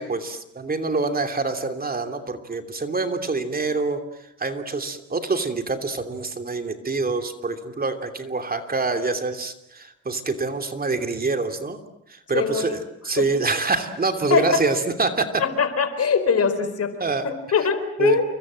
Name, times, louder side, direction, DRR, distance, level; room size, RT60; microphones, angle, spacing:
voice 1, 0.0-4.0 4.4-11.8 12.1-15.4 17.0-17.3 18.0-18.2, right 3 dB, 30° right, 7 dB, 3.0 m, -26 dB
voice 2, 12.3-12.7 13.2-13.3 14.3-14.6 15.4-17.0 17.2-18.2, left 6 dB, 55° left, 11 dB, 4.5 m, -22 dB
29.5 x 23.0 x 7.7 m, 0.78 s
cardioid pair, 90°, 30 cm